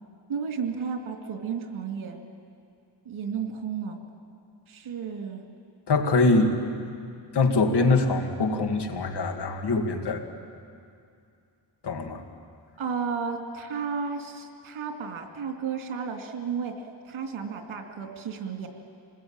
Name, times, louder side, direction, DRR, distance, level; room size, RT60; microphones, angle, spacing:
voice 1, 0.3-2.2 3.0-4.0 4.7-5.4 12.8-18.7, right 6 dB, 85° right, 3 dB, 2.8 m, -33 dB
voice 2, 5.9-6.6 7.3-10.2 11.8-12.2, left 3 dB, 60° left, 4 dB, 2.4 m, -23 dB
26.5 x 21.0 x 9.0 m, 2.4 s
wide cardioid pair, 110°, 46 cm